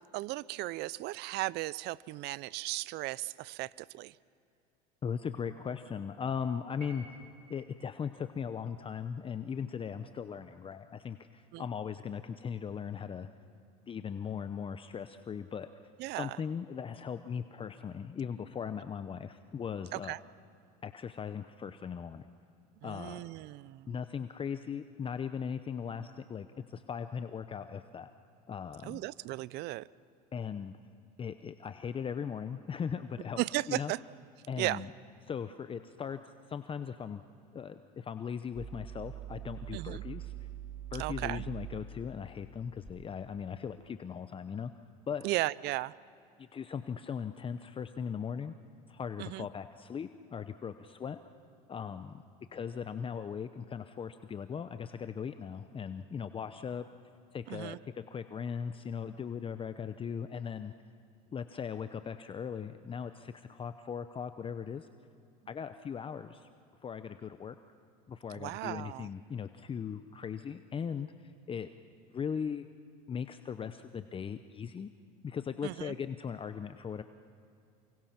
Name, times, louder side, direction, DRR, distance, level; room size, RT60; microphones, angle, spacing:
voice 1, 0.0-4.2 11.5-11.7 16.0-16.4 19.9-20.2 22.8-23.9 28.8-29.9 33.4-34.0 34.6-34.9 39.7-40.0 41.0-41.4 45.2-45.9 49.2-49.5 57.5-57.8 68.3-69.1 75.6-76.0, right 19 dB, 55° right, 21 dB, 0.6 m, -36 dB
voice 2, 5.0-7.2 7.5-13.3 13.9-15.7 16.1-20.1 20.8-22.2 22.8-23.2 23.9-28.1 28.5-29.0 30.3-30.8 31.2-33.4 33.7-33.9 34.5-34.9 35.3-36.2 36.5-37.2 37.5-40.3 40.9-44.7 45.1-45.3 46.4-48.5 48.9-51.2 51.7-52.2 52.5-56.9 57.3-60.7 61.3-64.9 65.5-66.5 66.8-67.6 68.1-71.1 71.5-71.7 72.1-72.7 73.1-74.9 75.2-77.0, left 7 dB, 25° left, 10 dB, 0.8 m, -38 dB
Piano, 6.8-7.7, right 3 dB, 80° right, 7.8 m, -52 dB
sound 1, 38.5-43.1, right 9 dB, 25° right, 2.5 m, -43 dB
28.5 x 25.0 x 6.0 m, 2.6 s
supercardioid pair, 95°, 20 cm